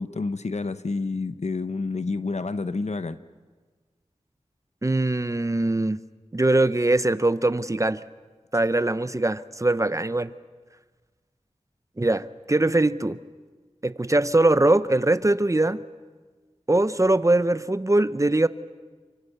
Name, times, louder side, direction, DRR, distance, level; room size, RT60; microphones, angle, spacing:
voice 1, 0.0-3.2, left 3 dB, 65° left, 12 dB, 0.9 m, -29 dB
voice 2, 4.8-6.0 6.3-8.0 8.5-10.3 12.0-13.2 13.8-15.8 16.7-18.5, right 2 dB, 25° right, 14 dB, 0.7 m, -22 dB
28.0 x 25.0 x 6.7 m, 1.4 s
wide cardioid pair, 65°, 12 cm